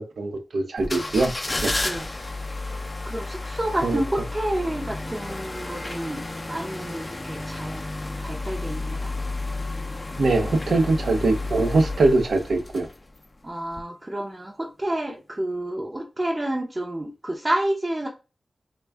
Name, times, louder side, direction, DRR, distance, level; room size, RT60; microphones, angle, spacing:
voice 1, 0.0-1.3 1.6-1.7 3.8-4.0 10.2-12.9, right 2 dB, 85° right, 0.6 m, -22 dB
sound 1, 0.8-13.3 13.7-13.8, left 2 dB, 35° left, 0.4 m, -32 dB
voice 2, 3.0-7.9 8.2-9.1 13.4-18.1, right 1 dB, 25° right, 0.6 m, -29 dB
3.4 x 2.2 x 3.3 m
wide cardioid pair, 85°, 0 cm